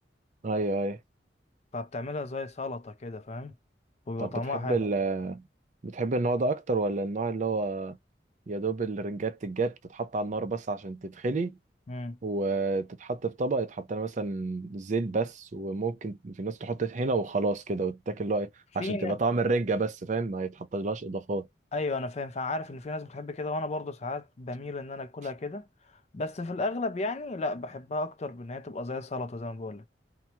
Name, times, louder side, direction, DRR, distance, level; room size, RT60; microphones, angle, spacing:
voice 1, 0.4-1.0 4.2-5.4 5.8-8.0 8.5-11.6 12.2-18.5 18.7-21.5, right 3 dB, 40° right, 0.5 m, -30 dB
voice 2, 1.7-3.5 4.1-4.8 11.9-12.2 18.8-19.2 21.7-25.7 26.1-29.8, left 2 dB, 35° left, 0.4 m, -34 dB
2.8 x 2.2 x 2.7 m
head